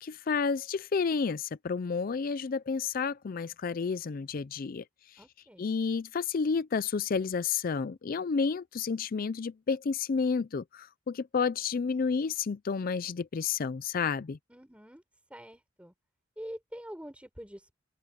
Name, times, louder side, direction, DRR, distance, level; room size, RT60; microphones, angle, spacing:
voice 1, 0.0-5.2 5.6-14.4, left 5 dB, 45° left, 0.4 m, -31 dB
voice 2, 5.2-5.7 14.5-15.0 15.3-15.9 16.4-17.7, equal, 5° right, 4.2 m, -45 dB
open air
head